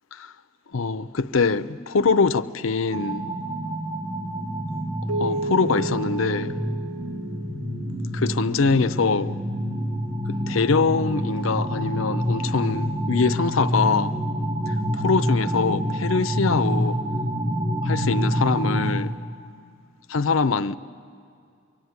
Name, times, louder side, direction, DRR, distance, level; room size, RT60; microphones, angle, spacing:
voice 1, 0.7-3.3 5.2-6.5 8.1-9.4 10.3-14.1 14.7-17.0 17.8-19.1 20.1-20.8, left 4 dB, 70° left, 0.6 m, -23 dB
sound 1, 2.9-19.0, equal, 20° right, 2.3 m, -27 dB
Keyboard (musical), 5.1-8.1, right 2 dB, 80° right, 0.6 m, -32 dB
24.0 x 23.0 x 9.5 m
head